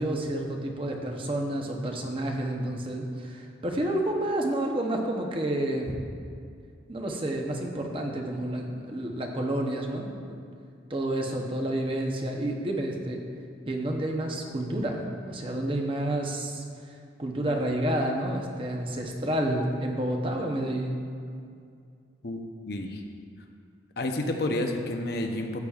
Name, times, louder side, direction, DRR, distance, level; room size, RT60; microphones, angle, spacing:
voice 1, 0.0-6.0 6.9-10.1 10.9-13.2 13.7-21.0, right 1 dB, 25° right, 2 dB, 0.8 m, -30 dB
voice 2, 22.2-23.0 24.0-25.6, left 1 dB, 55° left, 4 dB, 0.7 m, -30 dB
14.0 x 8.7 x 2.4 m, 2.3 s
head